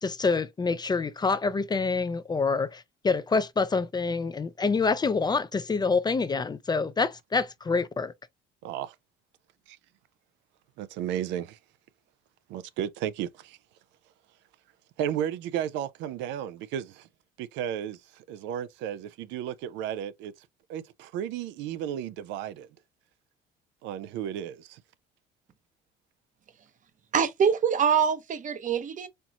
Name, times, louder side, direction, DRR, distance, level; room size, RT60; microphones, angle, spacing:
voice 1, 0.0-8.1, left 4 dB, 20° left, 0.5 m, -26 dB
voice 2, 8.6-9.0 10.8-11.6 12.5-13.6 15.0-17.1 17.4-22.7 23.8-24.8, right 10 dB, 80° right, 0.4 m, -34 dB
voice 3, 27.1-29.1, right 7 dB, 45° right, 0.8 m, -24 dB
4.4 x 3.0 x 2.4 m
supercardioid pair, 90°, 19 cm